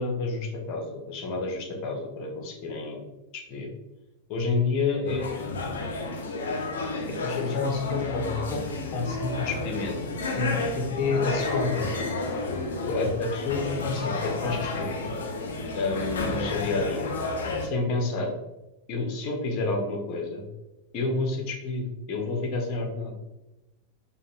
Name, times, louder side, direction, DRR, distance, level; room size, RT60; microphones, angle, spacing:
voice 1, 0.0-3.0 3.3-3.7 4.3-5.7 7.1-10.0 10.4-11.9 12.9-15.1 15.7-17.2 17.6-18.3 18.9-20.5 20.9-23.1, left 3 dB, 40° left, 1 dB, 0.9 m, -29 dB
sound 1, 5.1-17.7, left 2 dB, 65° left, 0.6 m, -31 dB
5.2 x 2.3 x 3.0 m, 1.0 s
figure-of-eight pair, 90°, 0 cm